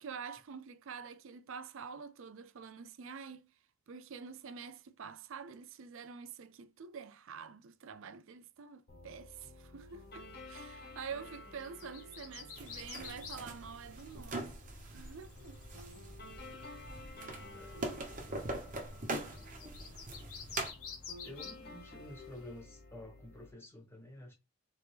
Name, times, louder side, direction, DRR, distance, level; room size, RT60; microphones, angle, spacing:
voice 1, 0.0-3.5 3.9-14.5 14.8-15.6, right 6 dB, 60° right, 0.4 m, -47 dB
sound 1, 8.9-23.5, left 2 dB, 45° left, 1.4 m, -53 dB
sound 2, 10.2-22.6, left 6 dB, 70° left, 1.4 m, -53 dB
sound 3, 12.6-20.7, right 2 dB, 35° right, 1.0 m, -43 dB
voice 2, 19.3-19.8 21.2-24.3, left 1 dB, 10° left, 1.1 m, -51 dB
4.1 x 3.4 x 3.4 m
head